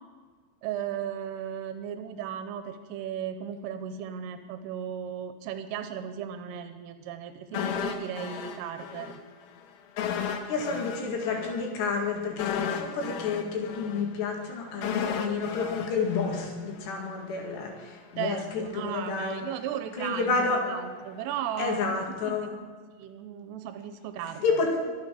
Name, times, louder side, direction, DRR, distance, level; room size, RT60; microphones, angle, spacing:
voice 1, 0.6-9.2 18.2-21.8 22.2-22.5 23.0-24.6, right 9 dB, 90° right, 8 dB, 3.3 m, -36 dB
sound 1, 7.5-9.2 9.4-9.6 10.0-17.0 17.3-17.5, left 7 dB, 90° left, 3.8 m, -34 dB
voice 2, 10.5-19.4 20.0-20.6 21.6-22.5 24.4-24.7, left 4 dB, 65° left, 1 dB, 3.8 m, -30 dB
24.0 x 8.8 x 5.1 m, 1.5 s
omnidirectional pair, 5.9 m